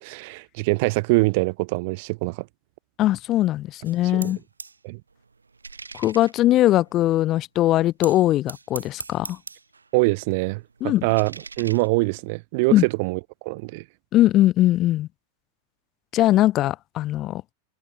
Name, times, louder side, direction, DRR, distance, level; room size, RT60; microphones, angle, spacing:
voice 1, 0.0-2.5 4.1-4.3 4.8-5.0 9.9-13.8, right 26 dB, 50° right, 0.5 m, -24 dB
voice 2, 3.0-4.4 6.0-9.4 10.8-11.0 12.7-12.8 14.1-15.1 16.1-17.4, left 14 dB, 35° left, 0.4 m, -20 dB
sound 1, 3.8-4.8 5.1-7.3 8.0-9.9 10.2-12.4, right 4 dB, 75° right, 1.4 m, -42 dB
figure-of-eight pair, 90°, 0 cm